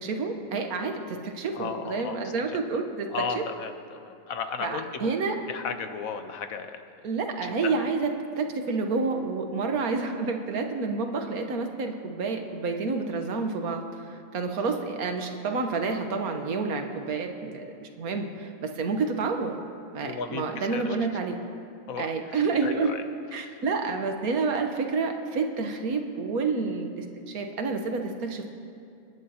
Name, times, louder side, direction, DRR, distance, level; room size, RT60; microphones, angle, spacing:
voice 1, 0.0-3.4 4.6-5.4 7.0-19.6 19.9-21.3 22.0-22.9 23.3-28.5, right 4 dB, 75° right, 4 dB, 1.5 m, -29 dB
voice 2, 1.6-2.2 2.7-2.8 3.1-5.1 5.5-6.8 7.6-7.9 20.0-21.0 21.9-22.1 22.6-23.0 23.4-23.5, left 6 dB, 70° left, 8 dB, 1.2 m, -34 dB
27.5 x 10.5 x 2.8 m, 2.5 s
omnidirectional pair, 1.6 m